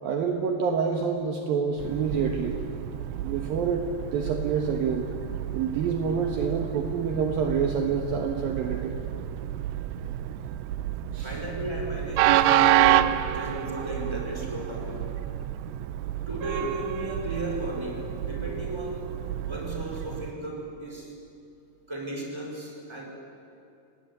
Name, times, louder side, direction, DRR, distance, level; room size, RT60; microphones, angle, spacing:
voice 1, 0.0-2.6 3.2-5.1 5.5-9.0 11.1-11.3, right 6 dB, 65° right, 4 dB, 2.9 m, -27 dB
Train, 1.8-20.3, right 12 dB, 90° right, 3.0 m, -29 dB
voice 2, 11.2-15.1 16.3-19.1 19.4-21.1 21.9-23.1, right 1 dB, 5° right, 0 dB, 4.7 m, -35 dB
27.0 x 18.5 x 9.8 m, 2.7 s
omnidirectional pair, 4.8 m